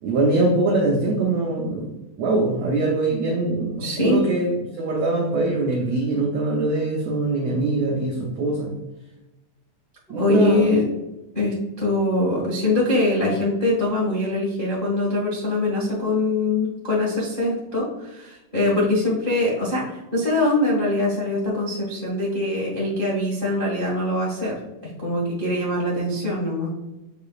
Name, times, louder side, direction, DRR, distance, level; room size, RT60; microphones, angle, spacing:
voice 1, 0.0-1.9 2.2-8.7 10.1-10.8, right 2 dB, 90° right, 0 dB, 1.5 m, -23 dB
voice 2, 3.8-4.2 10.1-10.8 11.3-24.5 24.8-26.7, left 2 dB, 90° left, -5 dB, 0.4 m, -23 dB
8.0 x 4.9 x 2.4 m, 1.0 s
omnidirectional pair, 4.2 m